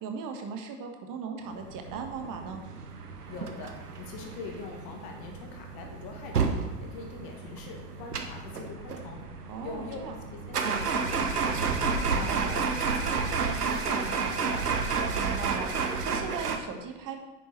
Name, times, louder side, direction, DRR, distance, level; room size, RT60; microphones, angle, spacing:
voice 1, 0.0-2.6 9.5-10.1 12.1-12.6 15.1-17.2, right 5 dB, 45° right, 4 dB, 1.5 m, -38 dB
sound 1, 1.6-16.6, right 5 dB, 85° right, 0.8 m, -31 dB
voice 2, 3.3-6.5 6.8-9.3 9.6-11.8 12.1-14.7, left 4 dB, 50° left, 2 dB, 2.1 m, -43 dB
10.0 x 6.9 x 4.4 m, 1.1 s
figure-of-eight pair, 70°, 46 cm